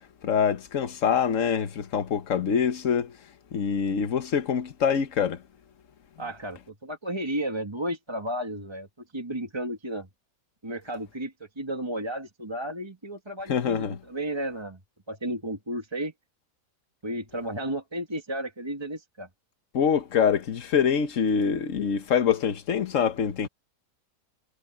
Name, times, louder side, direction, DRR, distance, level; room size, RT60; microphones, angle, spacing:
voice 1, 0.2-3.1 3.5-5.4 13.5-14.0 19.7-23.5, left 7 dB, 50° left, 1.4 m, -25 dB
voice 2, 6.2-8.9 9.1-10.1 10.6-14.8 15.1-16.1 17.0-19.3, right 1 dB, 15° right, 1.6 m, -33 dB
omnidirectional pair, 1.8 m